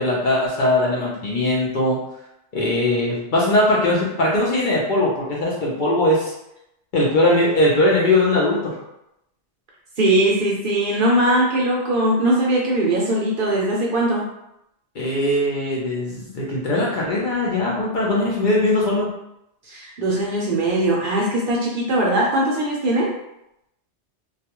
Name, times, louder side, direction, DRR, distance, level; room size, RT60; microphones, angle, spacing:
voice 1, 0.0-2.0 2.5-6.3 6.9-8.8 15.0-19.1, left 1 dB, 55° left, -4 dB, 0.6 m, -20 dB
voice 2, 10.0-14.2 19.7-23.1, right 1 dB, 60° right, -3 dB, 0.7 m, -20 dB
2.3 x 2.2 x 2.8 m, 0.83 s
omnidirectional pair, 1.2 m